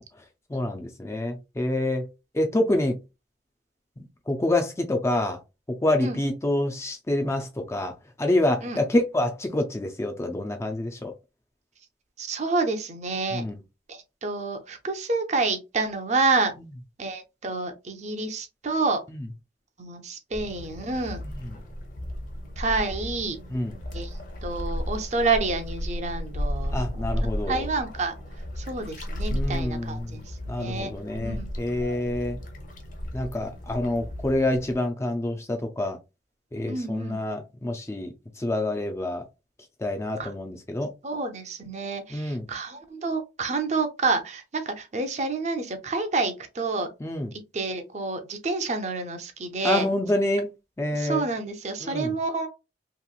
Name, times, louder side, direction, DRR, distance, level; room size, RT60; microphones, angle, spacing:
voice 1, 0.5-2.1 2.3-3.0 4.3-5.4 5.8-11.1 13.3-13.6 19.1-19.3 21.4-21.6 23.5-23.7 26.7-27.7 29.3-30.2 30.5-32.4 33.1-36.0 36.5-39.3 39.8-40.9 42.1-42.5 47.0-47.3 49.6-50.5 50.8-51.3 51.8-52.1, left 1 dB, 15° left, 0.4 m, -27 dB
voice 2, 12.2-13.4 13.9-16.5 17.0-19.0 19.8-21.2 22.6-23.4 23.9-24.1 24.4-27.1 27.5-28.1 28.6-30.2 30.6-31.5 36.7-37.2 40.2-40.3 41.0-46.9 47.5-49.9 50.9-52.5, right 3 dB, 40° right, 0.5 m, -28 dB
sound 1, 20.3-34.7, equal, 45° left, 0.8 m, -34 dB
2.9 x 2.9 x 2.3 m
head